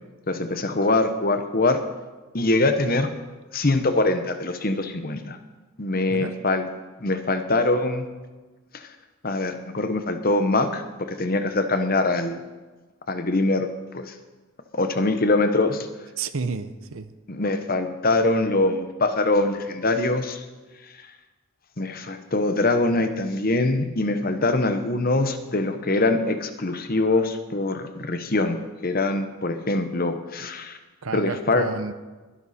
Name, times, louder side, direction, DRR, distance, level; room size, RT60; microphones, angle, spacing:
voice 1, 0.3-1.8 2.3-3.1 3.5-5.4 5.8-6.7 7.0-8.1 8.7-8.8 9.2-12.4 13.1-14.1 14.7-15.9 17.3-20.4 21.8-30.8 31.1-31.6, left 2 dB, 40° left, 8 dB, 1.0 m, -23 dB
voice 2, 16.2-17.1 31.0-31.9, right 4 dB, 65° right, 12 dB, 0.8 m, -31 dB
20.5 x 11.5 x 4.3 m, 1.3 s
head